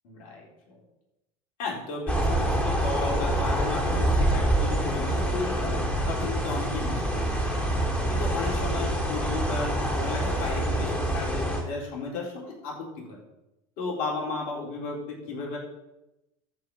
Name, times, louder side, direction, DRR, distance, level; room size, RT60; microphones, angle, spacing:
voice 1, 0.0-0.8 1.6-7.7 8.1-12.7 13.1-13.2 13.8-15.6, left 3 dB, 65° left, -2 dB, 4.1 m, -34 dB
sound 1, 2.1-11.6, right 1 dB, 10° left, 3.3 m, -26 dB
13.5 x 4.9 x 5.6 m, 0.92 s
hypercardioid pair, 80°, 17 cm